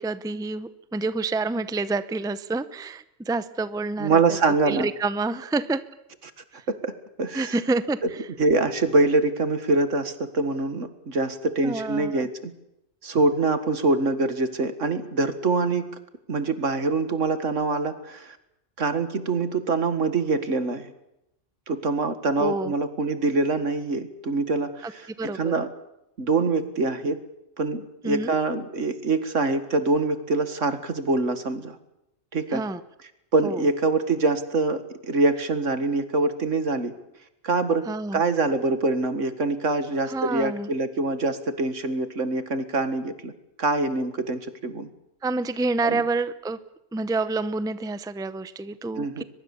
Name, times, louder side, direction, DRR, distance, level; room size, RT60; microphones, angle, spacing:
voice 1, 0.0-4.4 4.7-5.8 6.5-6.6 7.3-8.0 11.6-12.3 22.4-22.7 24.8-24.9 25.2-25.5 28.0-28.3 32.5-32.8 33.4-33.6 37.9-38.2 40.0-40.7 45.2-46.6 46.9-49.2, right 3 dB, 5° right, 14 dB, 0.6 m, -28 dB
voice 2, 4.0-4.9 6.7-6.9 7.2-7.5 8.4-12.5 13.0-15.9 16.3-18.4 18.8-20.9 21.7-25.7 26.2-27.2 27.6-31.8 32.3-32.6 33.3-36.9 37.4-37.9 38.1-43.3 43.6-44.9 45.8-46.0 49.0-49.2, right 3 dB, 75° right, 11 dB, 2.1 m, -24 dB
23.0 x 21.5 x 7.1 m, 0.84 s
omnidirectional pair, 1.3 m